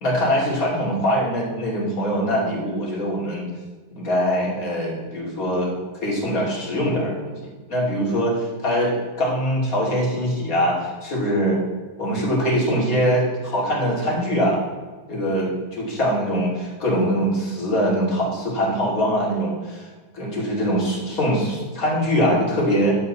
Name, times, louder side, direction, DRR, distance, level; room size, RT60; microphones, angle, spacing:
voice 1, 0.0-3.5 4.0-5.7 6.0-11.6 12.0-14.6 15.1-19.9 20.1-23.0, equal, 40° left, -4 dB, 3.0 m, -23 dB
12.0 x 7.7 x 4.1 m, 1.4 s
omnidirectional pair, 2.2 m